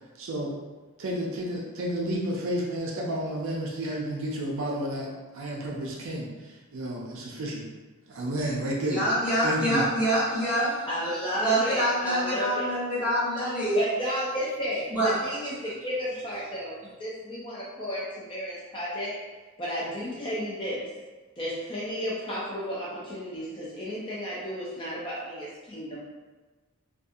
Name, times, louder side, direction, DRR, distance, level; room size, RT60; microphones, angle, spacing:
voice 1, 0.2-0.6 1.0-7.7 8.1-9.0 9.4-9.9, right 1 dB, 60° right, -3 dB, 0.4 m, -31 dB
voice 2, 8.9-10.8 11.4-13.8 14.9-15.2, right 1 dB, 5° right, -13 dB, 1.4 m, -26 dB
voice 3, 10.9-12.7 13.7-16.7 17.0-19.1 19.6-20.9 21.4-26.1, equal, 25° left, -7 dB, 0.4 m, -32 dB
2.6 x 2.3 x 2.5 m, 1.3 s
head